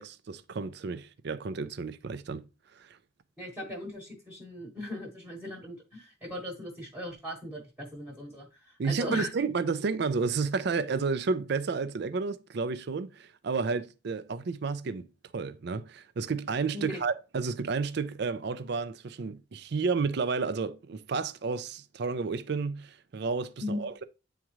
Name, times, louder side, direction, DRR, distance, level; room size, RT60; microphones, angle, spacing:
voice 1, 0.0-2.4 2.7-3.0 8.8-15.1 15.3-24.0, right 4 dB, 55° right, 0.4 m, -31 dB
voice 2, 3.4-9.4 16.7-17.0 23.6-23.9, left 1 dB, 5° right, 1.1 m, -38 dB
8.9 x 3.6 x 3.0 m
head